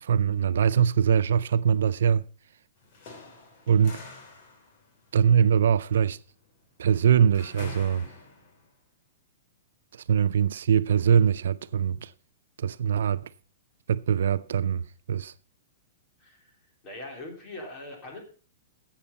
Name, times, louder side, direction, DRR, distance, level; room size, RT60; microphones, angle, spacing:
voice 1, 0.0-2.2 3.7-4.0 5.1-6.2 6.8-8.0 9.9-12.1 12.6-13.3 13.9-15.3, right 8 dB, 80° right, 0.5 m, -22 dB
sound 1, 2.8-8.7, left 3 dB, 40° left, 3.2 m, -46 dB
voice 2, 16.2-16.5 16.8-18.2, left 2 dB, 20° left, 3.4 m, -41 dB
12.5 x 8.3 x 5.3 m
hypercardioid pair, 175°, 0 cm